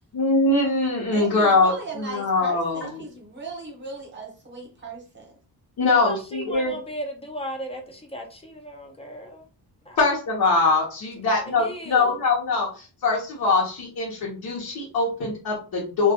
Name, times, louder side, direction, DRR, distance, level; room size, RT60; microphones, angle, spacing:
voice 1, 0.1-2.9 5.8-6.7 10.0-16.1, left 3 dB, 65° left, -4 dB, 0.8 m, -22 dB
voice 2, 1.1-5.3, right 4 dB, 30° right, 0 dB, 0.8 m, -37 dB
voice 3, 5.8-9.5 9.9-10.0 11.3-12.2, equal, 15° left, 2 dB, 0.4 m, -36 dB
2.3 x 2.2 x 2.7 m, 0.35 s
wide cardioid pair, 175°, 39 cm